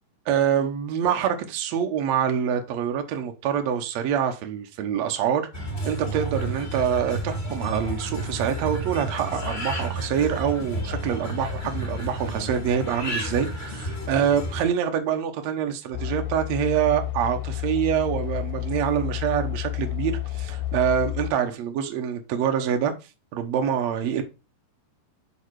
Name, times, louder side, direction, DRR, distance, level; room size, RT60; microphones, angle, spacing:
voice 1, 0.3-22.9 23.3-24.2, right 8 dB, 85° right, 1.5 m, -25 dB
sound 1, 5.5-14.6, right 1 dB, 35° left, 0.9 m, -31 dB
sound 2, 15.9-21.3, left 14 dB, 75° left, 2.2 m, -30 dB
6.3 x 5.5 x 4.7 m
omnidirectional pair, 4.7 m